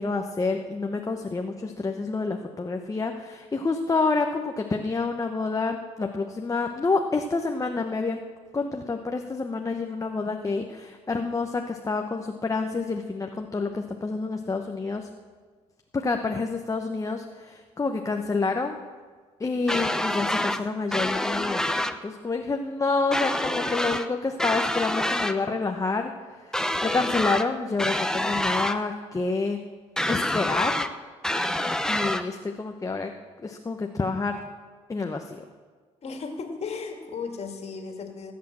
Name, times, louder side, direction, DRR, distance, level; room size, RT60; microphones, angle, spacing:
voice 1, 0.0-8.2 8.5-15.1 15.9-18.8 19.4-26.1 26.4-29.6 30.1-30.9 31.9-33.1 33.4-34.4 34.9-35.4, left 3 dB, 25° left, 4 dB, 1.0 m, -28 dB
sound 1, 19.7-20.6 20.9-22.0 23.1-24.1 24.4-25.4 26.5-27.5 27.8-28.8 30.0-30.9 31.2-32.2, left 1 dB, 5° left, 0.8 m, -27 dB
voice 2, 36.0-38.3, left 5 dB, 55° left, 4 dB, 2.4 m, -35 dB
18.0 x 8.5 x 7.5 m, 1.5 s
cardioid pair, 80°, 13 cm